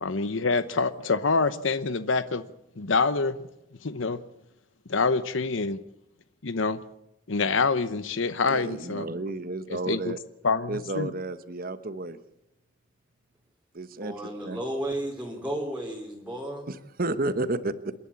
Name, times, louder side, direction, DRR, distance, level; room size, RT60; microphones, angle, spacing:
voice 1, 0.0-2.4 2.8-3.3 3.8-4.2 4.9-5.8 6.4-6.8 7.3-9.1 9.7-10.1 10.4-11.1, left 4 dB, 70° left, 13 dB, 0.9 m, -26 dB
voice 2, 8.4-10.2 10.7-12.2 13.7-14.1 14.4-14.6 16.7-17.9, right 2 dB, 45° right, 13 dB, 1.1 m, -31 dB
voice 3, 13.9-16.7, right 1 dB, 5° right, -2 dB, 3.0 m, -33 dB
28.0 x 11.0 x 8.3 m, 0.87 s
head